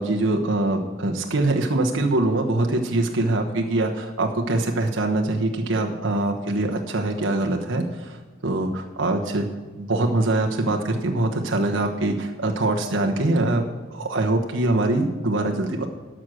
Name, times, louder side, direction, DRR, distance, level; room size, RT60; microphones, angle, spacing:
voice 1, 0.0-8.2 8.4-9.5 9.7-13.6 13.9-15.9, right 2 dB, 75° right, 2 dB, 1.1 m, -23 dB
12.5 x 6.2 x 6.4 m, 1.3 s
head